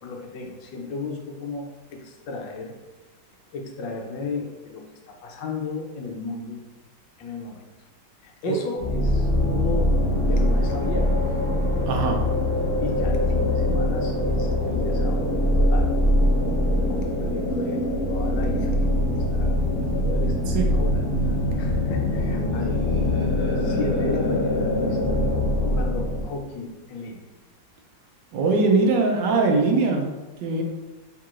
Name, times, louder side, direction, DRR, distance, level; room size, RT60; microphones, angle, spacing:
voice 1, 0.0-2.7 3.5-4.8 5.2-6.7 7.2-7.7 8.2-9.9 10.2-11.1 12.8-16.0 16.9-21.1 21.6-23.0 23.6-27.2, left 3 dB, 75° left, 1 dB, 1.3 m, -34 dB
sound 1, 8.8-26.2, left 1 dB, 45° left, 0.8 m, -23 dB
voice 2, 11.8-12.2 20.5-20.7 28.3-30.1 30.4-30.6, right 3 dB, 75° right, 2 dB, 1.2 m, -21 dB
4.5 x 3.7 x 2.4 m, 1.2 s
omnidirectional pair, 2.1 m